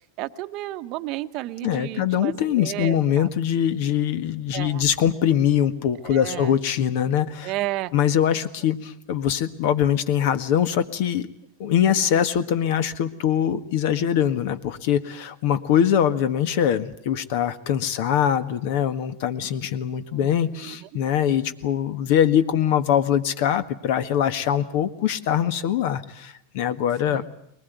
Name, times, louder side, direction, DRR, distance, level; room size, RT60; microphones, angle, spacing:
voice 1, 0.2-3.3 4.5-4.8 6.0-6.5 7.4-7.9 20.1-20.9 27.1-27.3, right 16 dB, 50° right, 9 dB, 0.9 m, -32 dB
voice 2, 1.6-7.5 7.9-11.3 11.6-27.2, left 9 dB, 60° left, 12 dB, 1.6 m, -23 dB
22.0 x 20.5 x 9.4 m, 0.74 s
supercardioid pair, 130°, 0 cm